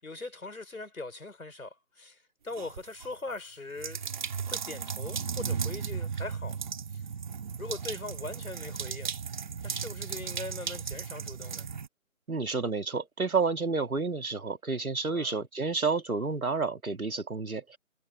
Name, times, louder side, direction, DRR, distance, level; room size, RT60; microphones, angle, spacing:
voice 1, 0.0-4.1 4.4-6.6 6.9-7.0 7.6-9.2 9.6-11.7 15.1-15.4, left 3 dB, 80° left, 5.5 m, -41 dB
sound 1, 2.5-3.1 3.8-11.9, right 6 dB, 35° right, 3.3 m, -35 dB
voice 2, 12.3-17.8, right 4 dB, 85° right, 1.9 m, -30 dB
figure-of-eight pair, 160°, 42 cm